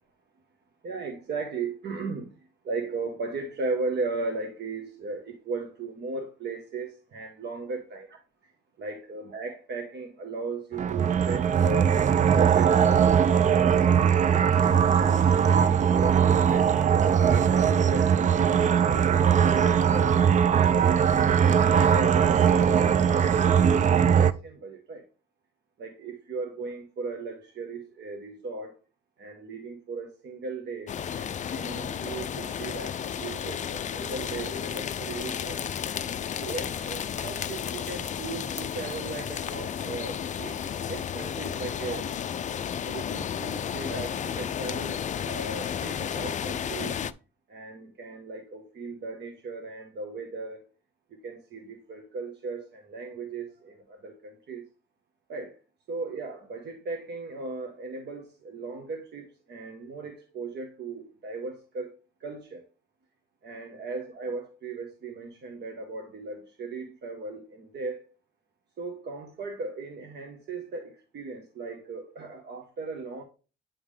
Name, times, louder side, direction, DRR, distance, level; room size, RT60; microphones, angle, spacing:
voice 1, 0.8-8.5 8.8-14.7 15.5-20.2 20.7-25.0 25.8-28.7 29.2-35.6 36.4-42.1 42.8-47.0 47.5-50.7 51.1-54.7 55.3-55.6 55.9-62.6 63.4-68.1 68.8-73.2, right 3 dB, 60° right, 1.1 m, -37 dB
sound 1, 10.7-24.3, right 8 dB, 40° right, 0.4 m, -21 dB
sound 2, 30.9-47.1, left 8 dB, 40° left, 0.4 m, -33 dB
8.8 x 3.6 x 3.3 m
cardioid pair, 90°, 20 cm